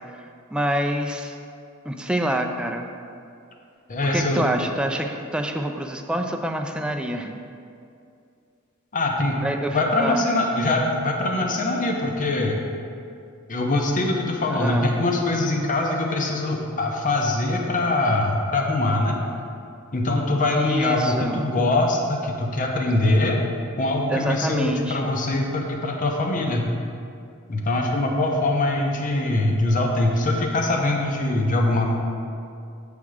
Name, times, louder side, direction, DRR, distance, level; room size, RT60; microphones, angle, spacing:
voice 1, 0.5-1.4 1.8-2.9 4.1-7.3 9.4-10.3 14.5-15.0 20.6-21.5 24.1-25.1, equal, 5° right, 3 dB, 0.4 m, -27 dB
voice 2, 3.9-4.4 8.9-9.4 9.7-12.6 13.5-19.2 19.9-23.4 23.8-26.7 27.5-32.0, left 2 dB, 40° left, 1 dB, 0.8 m, -23 dB
7.5 x 3.5 x 6.2 m, 2.4 s
head